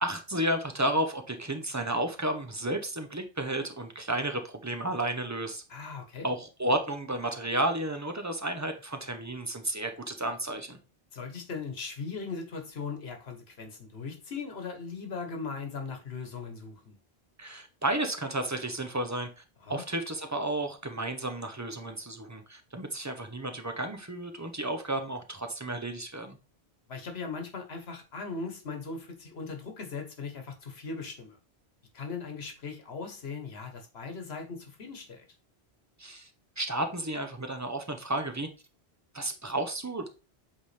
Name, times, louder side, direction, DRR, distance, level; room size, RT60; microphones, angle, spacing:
voice 1, 0.0-5.6 6.2-10.8 17.4-19.4 19.7-26.4 36.0-36.3 36.6-38.5 39.1-40.1, right 1 dB, 20° right, 0.7 m, -32 dB
voice 2, 5.7-6.3 11.1-17.0 19.6-19.8 26.9-31.4 31.9-35.3, left 4 dB, 75° left, 1.4 m, -39 dB
8.0 x 3.6 x 3.3 m
omnidirectional pair, 1.1 m